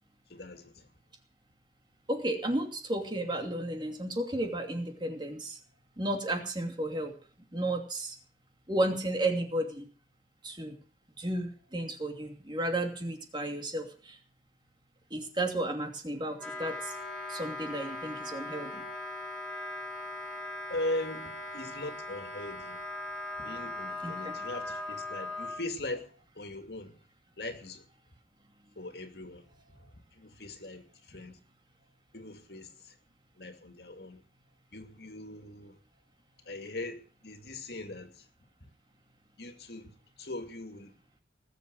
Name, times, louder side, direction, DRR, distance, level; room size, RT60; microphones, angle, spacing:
voice 1, 0.3-0.9 20.7-22.8 23.4-27.0 27.4-27.8 28.8-29.5 29.8-31.4 32.1-33.0 33.4-34.2 34.7-35.8 36.4-38.3 39.4-40.9, left 2 dB, 60° left, 2.5 m, -40 dB
voice 2, 2.1-5.6 6.0-7.1 7.5-8.2 8.7-9.9 10.4-10.8 11.2-14.2 15.1-17.0 17.3-18.8 24.0-24.4, right 1 dB, 25° right, 2.7 m, -33 dB
Wind instrument woodwind instrument, 16.3-25.6, left 2 dB, 5° left, 3.8 m, -39 dB
19.5 x 8.0 x 8.0 m
head